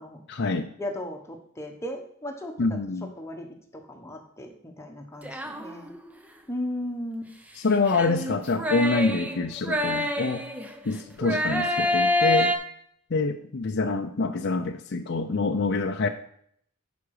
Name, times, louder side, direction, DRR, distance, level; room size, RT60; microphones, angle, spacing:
voice 1, 0.3-0.7 2.6-3.1 7.6-10.4 10.9-12.5 13.1-16.1, left 3 dB, 55° left, 5 dB, 0.6 m, -26 dB
voice 2, 0.8-5.9 6.5-7.3, left 1 dB, 15° left, 2 dB, 1.2 m, -36 dB
sound 1, 5.2-6.1 7.9-10.8 11.2-12.6, left 1 dB, 5° right, 0.7 m, -26 dB
10.5 x 5.0 x 4.9 m, 0.66 s
head